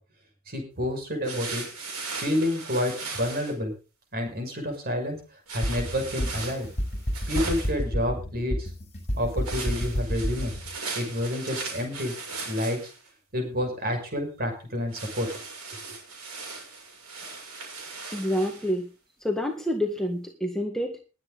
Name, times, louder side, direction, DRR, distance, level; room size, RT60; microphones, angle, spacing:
voice 1, 0.5-1.6 2.1-3.7 4.1-5.2 5.5-6.7 7.3-8.7 9.2-10.5 11.0-12.1 12.5-12.8 13.3-15.3, left 1 dB, 45° right, 5 dB, 6.0 m, -29 dB
sound 1, 1.2-3.5 5.5-7.8 9.4-13.1 14.9-18.7, right 4 dB, 85° right, 6.9 m, -38 dB
sound 2, 5.6-10.7, equal, 30° left, 7.7 m, -29 dB
voice 2, 18.1-18.9 19.2-21.0, equal, ahead, 1 dB, 1.7 m, -27 dB
21.0 x 8.9 x 3.9 m, 0.34 s
head